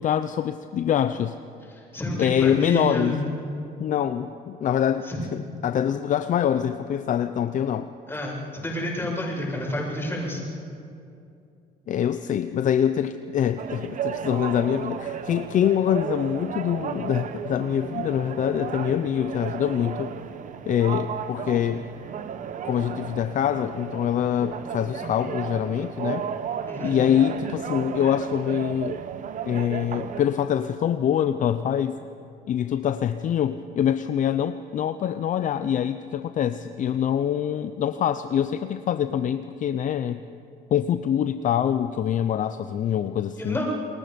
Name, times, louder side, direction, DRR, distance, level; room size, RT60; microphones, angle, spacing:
voice 1, 0.0-1.4 2.2-3.2 3.8-5.1 5.6-7.9 11.9-20.2 20.7-21.9 22.6-26.3 26.8-29.0 29.5-32.0 32.5-40.2 40.7-43.6, left 9 dB, 50° left, 10 dB, 0.7 m, -24 dB
voice 2, 1.9-3.2 5.0-5.2 8.1-10.4 26.7-27.0 43.4-43.6, left 1 dB, 15° left, -3 dB, 7.9 m, -29 dB
sound 1, 13.6-30.2, right 8 dB, 50° right, 1.1 m, -34 dB
28.5 x 21.5 x 5.3 m, 2.5 s
cardioid pair, 110°, 17 cm